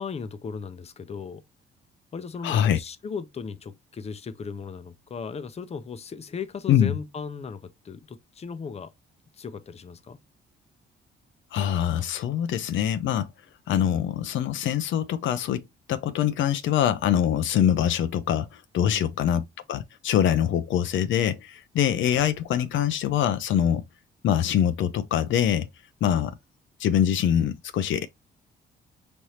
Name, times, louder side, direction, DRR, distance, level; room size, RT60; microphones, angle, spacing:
voice 1, 0.0-1.4 2.1-8.9 9.3-10.2 18.8-19.1, left 5 dB, 30° left, 0.6 m, -37 dB
voice 2, 2.4-2.8 6.7-6.9 11.5-13.3 13.7-15.6 15.9-23.8 24.2-25.7 26.0-26.3 26.8-28.1, left 10 dB, 70° left, 0.5 m, -24 dB
5.2 x 3.3 x 2.8 m
cardioid pair, 90°, 20 cm